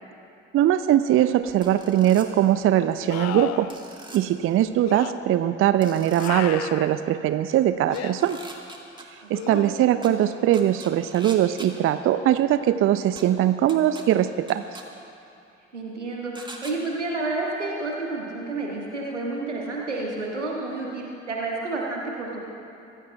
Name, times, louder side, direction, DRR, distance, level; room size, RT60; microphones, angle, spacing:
voice 1, 0.5-3.7 4.1-8.4 9.3-14.7, right 12 dB, 40° right, 12 dB, 0.5 m, -21 dB
sound 1, 1.5-1.6 3.1-3.8 4.8-5.1 6.2-6.9 7.9-8.1 9.3-10.0 13.2-13.3, left 12 dB, 50° left, 0.6 m, -33 dB
sound 2, 1.6-2.3 3.7-4.2 5.8-6.3 7.9-9.0 10.0-10.1 10.5-11.7 13.2-13.3 13.7-14.0 14.5-14.8 16.4-16.7, right 2 dB, 15° right, 1.8 m, -42 dB
voice 2, 15.7-22.4, right 3 dB, 85° right, -2 dB, 1.7 m, -30 dB
24.0 x 16.0 x 2.4 m, 2.6 s
figure-of-eight pair, 50°, 35 cm